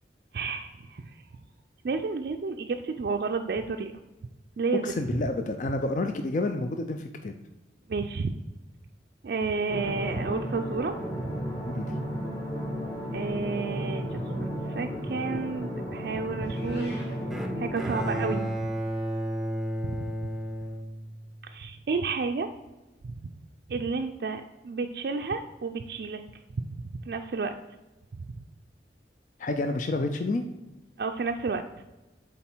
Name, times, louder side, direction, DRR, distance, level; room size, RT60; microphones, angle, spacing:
voice 1, 0.3-1.2 1.8-3.9 4.6-5.1 7.9-8.3 9.2-11.0 11.2-11.5 13.1-17.1 17.6-18.5 19.8-20.0 21.4-22.5 23.0-23.1 23.7-26.2 27.1-27.6 31.0-31.6, right 4 dB, 60° right, 4 dB, 0.4 m, -31 dB
voice 2, 4.8-7.3 11.7-11.9 29.4-30.5, left 2 dB, 45° left, 6 dB, 0.4 m, -29 dB
sound 1, 9.7-18.4, equal, 20° left, 1.2 m, -33 dB
Meow, 16.4-17.2, left 1 dB, 70° left, 2.1 m, -47 dB
Bowed string instrument, 17.3-21.5, equal, ahead, 0.6 m, -33 dB
7.2 x 4.1 x 4.5 m, 1.1 s
head